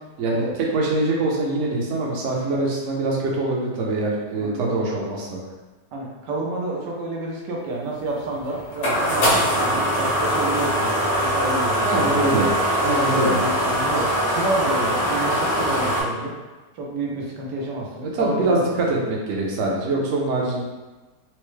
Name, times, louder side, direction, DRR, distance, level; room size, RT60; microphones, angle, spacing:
voice 1, 0.2-5.4 11.8-12.5 12.8-13.4 18.0-20.6, right 2 dB, 55° right, -2 dB, 0.9 m, -24 dB
voice 2, 4.3-5.0 5.9-12.3 13.0-16.3 16.7-18.6, right 1 dB, 85° right, -2 dB, 1.4 m, -29 dB
sound 1, 8.0-16.0, equal, 80° left, 1.9 m, -22 dB
4.5 x 2.1 x 3.1 m, 1.2 s
omnidirectional pair, 1.8 m